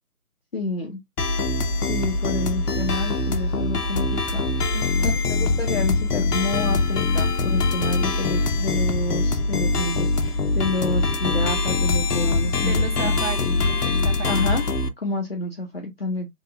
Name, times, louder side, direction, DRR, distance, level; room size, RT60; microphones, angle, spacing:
voice 1, 0.5-1.0 1.9-4.5 5.0-13.1 14.2-14.6 15.0-16.3, left 2 dB, 40° left, 0.5 m, -29 dB
sound 1, 1.2-14.9, left 3 dB, 90° left, 0.6 m, -23 dB
voice 2, 4.7-5.2 12.6-14.4, right 7 dB, 60° right, 0.7 m, -33 dB
2.8 x 2.4 x 2.6 m
figure-of-eight pair, 150°, 46 cm